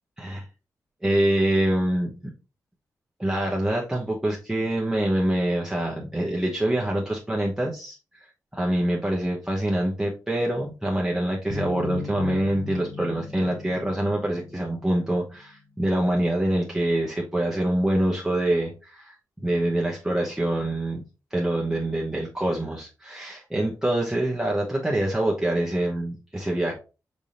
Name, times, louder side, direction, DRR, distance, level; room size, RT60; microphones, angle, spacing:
voice 1, 1.0-2.1 3.2-8.3 8.5-19.1 19.4-21.0 21.3-26.7, right 1 dB, 5° right, -3 dB, 0.9 m, -25 dB
sound 1, 11.5-15.2, left 3 dB, 50° right, 1.0 m, -37 dB
5.2 x 3.4 x 2.8 m, 0.31 s
cardioid pair, 95°, 7 cm